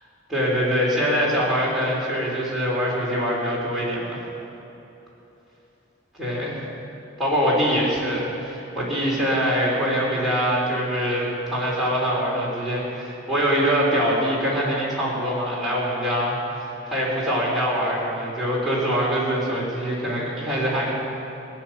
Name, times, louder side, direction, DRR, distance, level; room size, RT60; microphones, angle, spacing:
voice 1, 0.3-4.2 6.2-6.6 7.2-20.9, equal, ahead, -7 dB, 4.5 m, -24 dB
18.5 x 9.8 x 7.9 m, 2.9 s
head